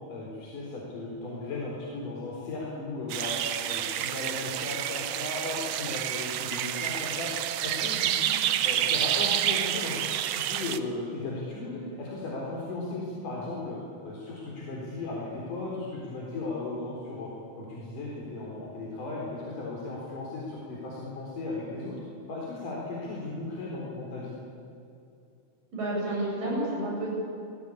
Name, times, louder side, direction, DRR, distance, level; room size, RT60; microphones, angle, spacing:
voice 1, 0.1-3.4 3.7-7.3 7.6-10.0 10.3-13.8 14.0-17.3 17.6-22.0 22.3-24.3, left 2 dB, 70° left, -4 dB, 5.6 m, -36 dB
sound 1, 3.1-10.8, right 11 dB, 70° right, 1.6 m, -29 dB
voice 2, 25.7-27.1, right 1 dB, 90° right, -3 dB, 9.8 m, -30 dB
27.5 x 20.0 x 8.6 m, 2.6 s
omnidirectional pair, 3.8 m